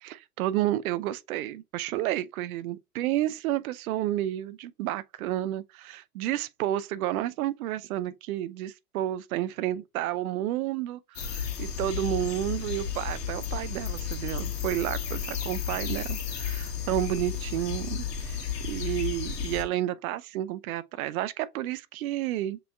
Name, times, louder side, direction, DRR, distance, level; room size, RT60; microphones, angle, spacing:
voice 1, 0.0-22.6, right 13 dB, 65° right, 0.6 m, -31 dB
sound 1, 11.2-19.6, left 7 dB, 90° left, 1.2 m, -33 dB
6.7 x 3.1 x 2.3 m
hypercardioid pair, 105°, 47 cm